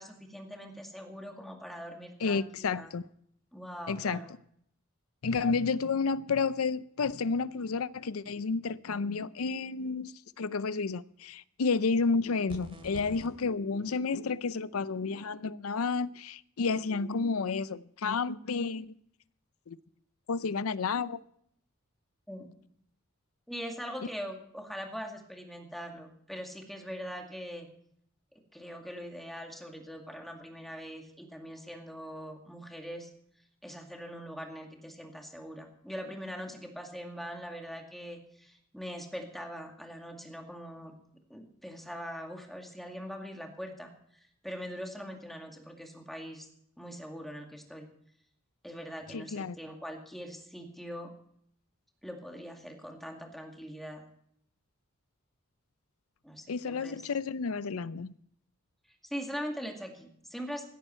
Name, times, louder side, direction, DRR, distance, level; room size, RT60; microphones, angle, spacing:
voice 1, 0.0-2.9 3.5-4.3 5.3-5.6 22.3-22.5 23.5-27.7 28.3-33.1 33.6-40.9 41.3-43.9 44.4-46.5 46.8-47.9 48.6-51.1 52.0-54.0 56.2-57.0 59.1-60.7, equal, ahead, 2.2 m, -42 dB
voice 2, 2.2-3.0 3.9-4.2 5.2-10.1 10.4-18.9 19.7-19.8 20.3-21.2 49.1-49.6 56.5-58.2, left 4 dB, 90° left, 0.6 m, -31 dB
sound 1, 12.5-13.3, equal, 25° right, 2.6 m, -45 dB
16.5 x 13.5 x 4.4 m
head